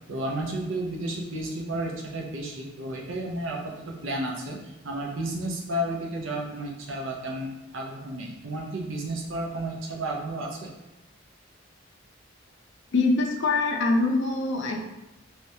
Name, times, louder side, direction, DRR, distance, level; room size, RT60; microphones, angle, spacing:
voice 1, 0.1-10.7, right 1 dB, 80° right, 0 dB, 0.7 m, -32 dB
voice 2, 12.9-14.9, left 3 dB, 65° left, 2 dB, 0.5 m, -24 dB
3.3 x 3.0 x 2.7 m, 0.97 s
head